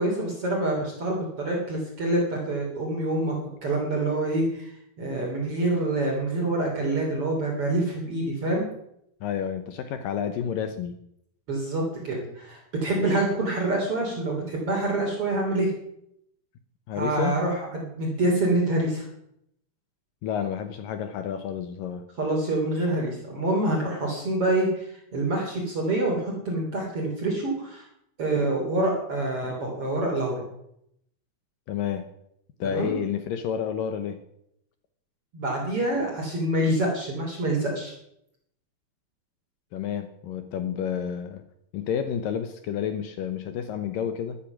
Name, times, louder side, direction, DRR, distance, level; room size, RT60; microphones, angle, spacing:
voice 1, 0.0-3.3 3.6-4.7 5.0-8.7 11.5-15.7 17.0-19.1 22.2-24.8 25.1-27.8 28.2-30.4 32.6-33.0 35.3-37.9, right 2 dB, 40° right, -1 dB, 3.7 m, -26 dB
voice 2, 9.2-11.0 16.9-17.4 20.2-22.0 31.7-32.0 32.6-34.2 39.7-41.4 41.7-44.4, left 8 dB, 70° left, 9 dB, 2.4 m, -30 dB
14.0 x 12.5 x 6.0 m, 0.74 s
omnidirectional pair, 4.4 m